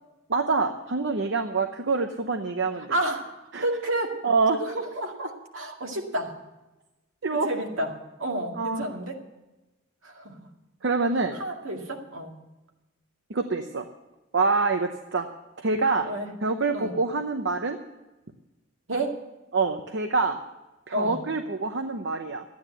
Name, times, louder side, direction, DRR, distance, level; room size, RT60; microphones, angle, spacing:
voice 1, 0.3-3.0 3.5-3.6 4.2-4.6 7.2-7.5 8.5-8.9 10.8-11.4 13.3-13.9 14.3-15.3 15.6-16.1 16.4-17.8 19.5-20.4 20.9-22.4, right 4 dB, 60° right, 6 dB, 0.8 m, -26 dB
voice 2, 2.9-4.3 4.6-6.4 7.4-7.9 8.2-9.2 10.0-10.3 11.4-12.4 16.0-16.3 16.7-16.9 18.9-19.2 20.9-21.2, right 1 dB, 75° right, 1 dB, 2.2 m, -30 dB
13.0 x 9.6 x 7.9 m, 1.1 s
head